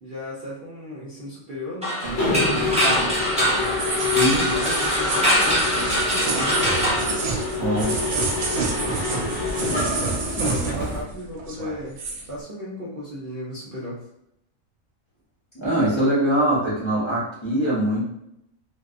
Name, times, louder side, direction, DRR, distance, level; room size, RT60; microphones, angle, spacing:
voice 1, 0.0-3.2 3.5-7.2 8.8-9.3 9.6-12.0 12.3-14.0, equal, 55° right, -7 dB, 0.6 m, -36 dB
sound 1, 1.8-7.8, equal, 10° right, 0.3 m, -24 dB
Mechanisms, 2.0-11.0, left 3 dB, 65° left, 1.2 m, -27 dB
sound 2, 2.0-11.1 11.4-12.3, right 3 dB, 85° right, 1.0 m, -29 dB
voice 2, 4.1-4.4 7.6-7.9 15.5-18.1, right 1 dB, 25° left, -10 dB, 0.8 m, -22 dB
2.6 x 2.2 x 2.4 m, 0.79 s
omnidirectional pair, 1.4 m